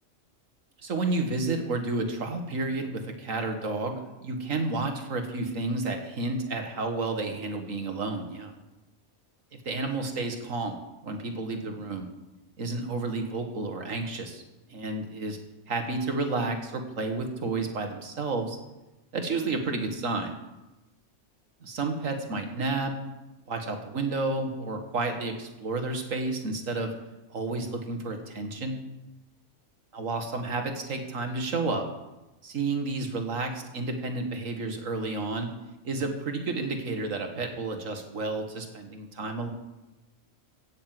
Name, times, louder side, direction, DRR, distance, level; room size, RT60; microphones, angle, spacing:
voice 1, 0.8-8.5 9.7-10.8 11.0-12.1 12.6-14.4 14.7-15.4 15.7-18.6 19.1-20.4 21.6-22.9 23.5-26.9 27.3-28.8 29.9-31.9 32.4-35.5 35.8-39.5, right 3 dB, 75° right, 5 dB, 2.0 m, -31 dB
16.5 x 6.6 x 7.6 m, 1.0 s
omnidirectional pair, 1.4 m